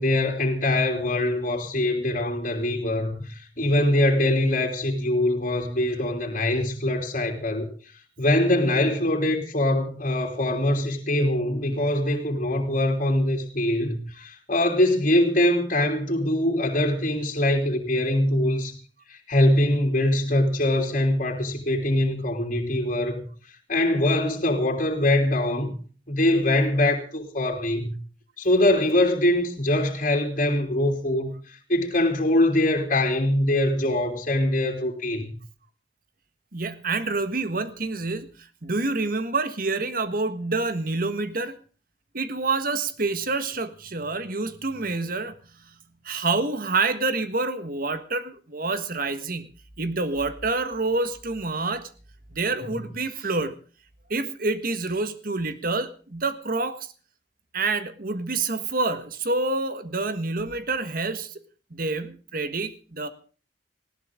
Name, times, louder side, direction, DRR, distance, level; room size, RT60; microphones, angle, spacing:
voice 1, 0.0-7.7 8.2-18.8 19.1-23.3 23.7-25.7 26.1-28.0 28.4-35.3, left 1 dB, 45° left, 3.1 m, -23 dB
voice 2, 36.5-38.3 38.6-41.6 42.1-45.4 46.0-49.5 49.8-51.9 52.3-53.5 54.1-56.9 57.5-61.4 61.7-63.1, right 3 dB, 50° right, 1.5 m, -27 dB
19.5 x 17.0 x 3.7 m
head